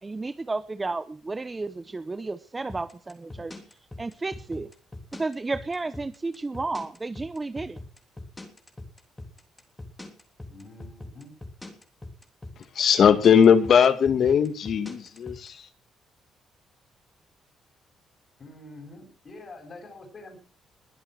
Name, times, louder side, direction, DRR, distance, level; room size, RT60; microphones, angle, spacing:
voice 1, 0.0-3.5 4.0-4.7 5.1-7.8, right 3 dB, 25° right, 0.9 m, -32 dB
sound 1, 2.7-15.5, left 2 dB, 15° left, 3.4 m, -41 dB
voice 2, 10.4-11.3 18.4-20.4, left 2 dB, 40° left, 7.6 m, -45 dB
voice 3, 12.8-15.7, left 7 dB, 60° left, 2.1 m, -19 dB
21.5 x 8.1 x 6.2 m
cardioid pair, 90°, 0 cm